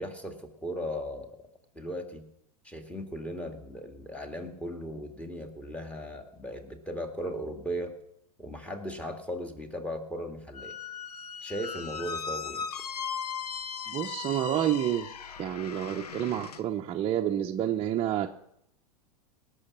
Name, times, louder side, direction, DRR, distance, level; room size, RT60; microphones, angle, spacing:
voice 1, 0.0-1.3 1.7-2.2 2.6-7.9 8.4-10.8 11.4-12.7, equal, 5° left, 4 dB, 2.1 m, -37 dB
Squeak, 10.5-16.6, left 6 dB, 85° left, 0.8 m, -38 dB
voice 2, 13.9-18.3, right 11 dB, 30° right, 1 dB, 0.8 m, -29 dB
18.5 x 6.5 x 7.3 m, 0.75 s
hypercardioid pair, 100°, 20 cm